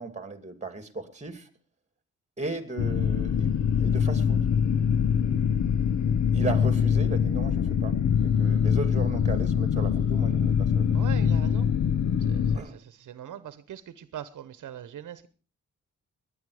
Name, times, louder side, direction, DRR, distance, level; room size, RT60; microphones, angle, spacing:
voice 1, 0.0-1.5 2.4-4.5 6.3-10.9 12.5-12.8, right 3 dB, 20° right, 9 dB, 2.5 m, -36 dB
sound 1, 2.8-12.6, left 7 dB, 65° left, 0.8 m, -24 dB
voice 2, 10.9-11.7 12.2-15.3, right 10 dB, 75° right, 13 dB, 1.0 m, -41 dB
19.5 x 9.8 x 4.9 m, 0.37 s
cardioid pair, 85°, 31 cm